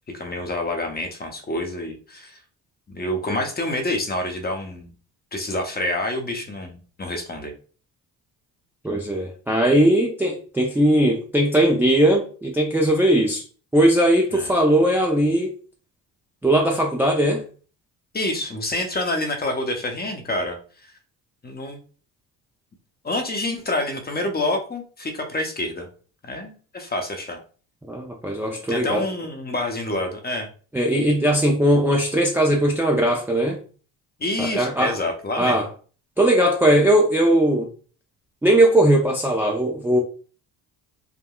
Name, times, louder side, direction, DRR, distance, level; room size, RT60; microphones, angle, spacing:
voice 1, 0.1-2.4 2.9-4.9 5.3-7.5 14.3-14.5 18.1-20.6 20.8-20.9 21.4-21.8 23.0-25.9 26.2-27.4 28.7-30.5 34.2-35.7, left 1 dB, 20° left, 4 dB, 0.8 m, -27 dB
voice 2, 8.8-13.4 13.7-15.5 16.4-17.4 27.9-29.0 30.7-33.6 34.4-35.0 35.4-35.7 36.2-37.7 38.4-40.0, right 1 dB, 5° right, -1 dB, 0.4 m, -19 dB
3.6 x 2.2 x 2.2 m, 0.40 s
supercardioid pair, 70°, 43 cm